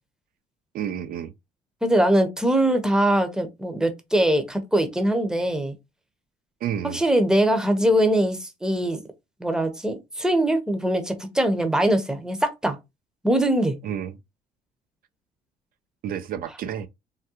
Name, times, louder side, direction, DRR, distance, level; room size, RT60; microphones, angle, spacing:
voice 1, 0.7-1.3 6.6-7.0 13.8-14.2 16.0-16.9, right 9 dB, 60° right, 0.4 m, -30 dB
voice 2, 1.8-5.7 6.9-9.0 9.4-12.8 13.2-13.8, right 1 dB, 5° right, 0.7 m, -22 dB
3.5 x 2.2 x 2.8 m
cardioid pair, 110°, 17 cm